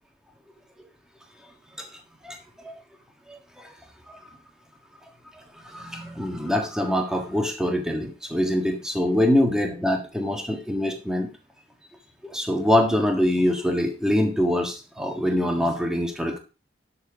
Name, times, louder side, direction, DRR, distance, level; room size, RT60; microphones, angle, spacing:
voice 1, 2.2-2.7 3.3-3.7 4.1-4.2 5.5-11.3 12.2-16.4, left 1 dB, 5° right, 3 dB, 1.6 m, -24 dB
12.5 x 4.4 x 4.8 m, 0.33 s
head